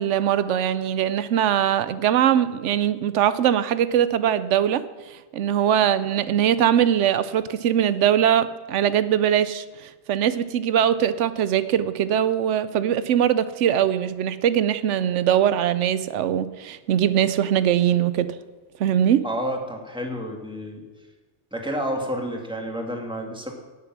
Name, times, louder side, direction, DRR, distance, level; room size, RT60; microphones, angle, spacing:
voice 1, 0.0-18.4 18.8-19.2, right 10 dB, 90° right, 14 dB, 0.9 m, -21 dB
voice 2, 19.2-20.8 21.5-23.5, equal, 5° right, 1 dB, 1.8 m, -30 dB
17.5 x 6.8 x 6.1 m, 1.2 s
omnidirectional pair, 1.2 m